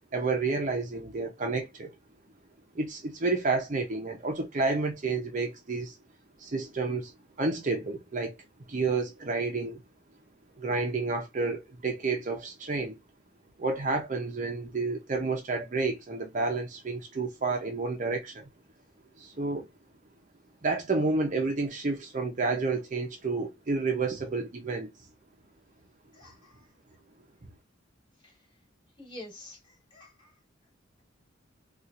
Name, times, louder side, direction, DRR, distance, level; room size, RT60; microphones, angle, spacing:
voice 1, 0.1-1.9 2.7-6.0 6.4-7.1 7.4-8.3 8.7-9.8 10.6-13.0 13.6-18.5 19.2-19.7 20.6-24.9, right 3 dB, 40° right, 0.6 m, -30 dB
voice 2, 26.1-26.7 28.2-28.3 29.0-30.3, left 1 dB, 25° left, 2.7 m, -48 dB
4.2 x 2.4 x 2.5 m
head